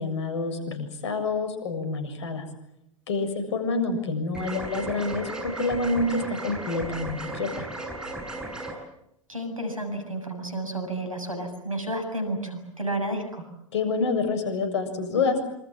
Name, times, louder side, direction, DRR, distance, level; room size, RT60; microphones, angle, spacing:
voice 1, 0.0-2.4 3.1-7.6 13.7-15.4, left 3 dB, 60° left, 8 dB, 7.2 m, -27 dB
sound 1, 4.3-8.7, right 2 dB, 5° right, 7.5 m, -35 dB
voice 2, 9.3-13.5, right 1 dB, 90° right, 8 dB, 7.3 m, -31 dB
27.0 x 26.5 x 7.4 m, 0.80 s
figure-of-eight pair, 95°, 17 cm